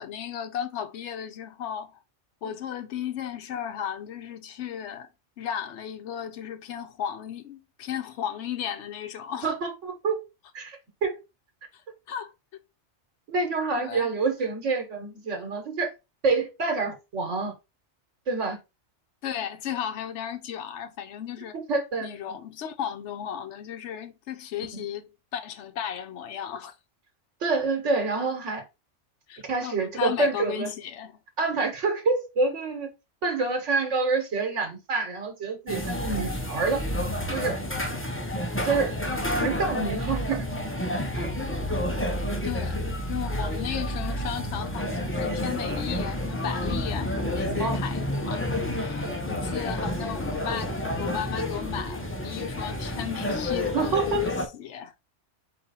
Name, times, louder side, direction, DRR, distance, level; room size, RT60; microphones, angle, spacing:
voice 1, 0.0-2.0 2.4-5.1 5.4-9.5 11.7-11.8 12.1-12.3 13.8-14.1 19.2-21.6 22.0-26.7 29.3-31.2 42.4-42.8 43.1-54.9, left 9 dB, 75° left, 1.0 m, -35 dB
voice 2, 9.4-10.2 10.5-11.2 13.3-15.9 16.2-17.5 18.3-18.6 21.5-22.1 24.7-24.8 27.4-28.6 29.5-30.7 31.4-32.9 33.2-36.8 37.3-37.6 38.6-40.5 41.1-41.3 47.5-47.8 49.0-49.2 53.7-54.2, right 4 dB, 90° right, 1.5 m, -27 dB
sound 1, 35.7-54.5, left 1 dB, 15° left, 0.7 m, -30 dB
4.2 x 3.0 x 4.0 m
omnidirectional pair, 1.2 m